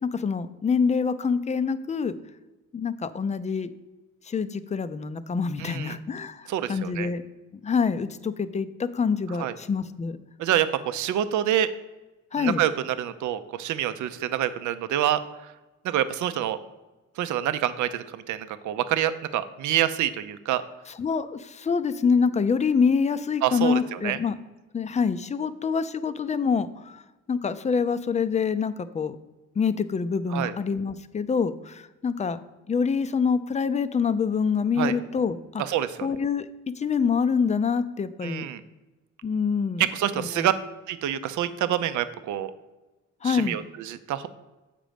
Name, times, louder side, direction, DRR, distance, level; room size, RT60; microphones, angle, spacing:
voice 1, 0.0-2.1 2.7-3.7 4.3-7.2 7.6-10.2 12.3-12.6 21.0-24.4 24.7-27.0 27.3-29.2 29.6-32.4 32.7-35.6 36.0-36.5 36.8-38.4 39.2-39.9 40.1-40.5 43.2-43.6, left 5 dB, 25° left, 13 dB, 0.4 m, -26 dB
voice 2, 5.6-6.0 6.5-7.1 9.4-9.5 10.4-11.7 12.4-15.5 15.8-16.6 17.2-20.6 23.4-24.2 30.3-30.5 34.8-34.9 35.6-36.1 38.2-38.6 39.8-40.5 40.9-42.5 43.2-44.3, right 11 dB, 75° right, 12 dB, 0.6 m, -27 dB
7.5 x 5.1 x 5.1 m, 1.1 s
cardioid pair, 90°, 30 cm